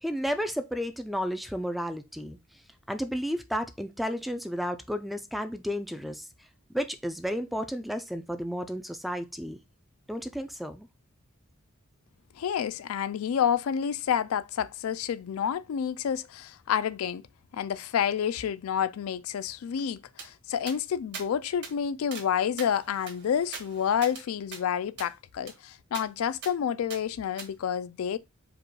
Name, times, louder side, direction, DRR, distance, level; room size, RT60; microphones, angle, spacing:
voice 1, 0.0-2.4 2.9-6.3 6.7-9.6 10.1-10.9, equal, ahead, 0.3 m, -32 dB
voice 2, 12.4-17.3 17.5-28.2, left 8 dB, 80° left, 0.4 m, -29 dB
sound 1, 20.2-20.3 20.7-20.8 21.1-21.3 21.6-21.7 22.1-22.3 22.6-24.2 24.5-24.6 25.0-25.1 25.5-25.6 25.9-26.1 26.4-26.5 26.9-27.0 27.4-27.5, right 5 dB, 55° right, 1.4 m, -42 dB
4.9 x 2.3 x 4.5 m
head